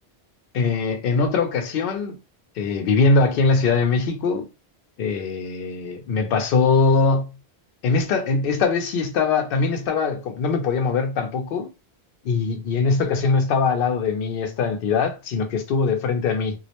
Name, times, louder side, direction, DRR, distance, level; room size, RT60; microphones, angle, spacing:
voice 1, 0.5-2.1 2.6-4.5 5.0-7.3 7.8-11.7 12.2-16.5, left 4 dB, 65° left, 0.7 m, -21 dB
2.3 x 2.0 x 2.8 m
omnidirectional pair, 1.1 m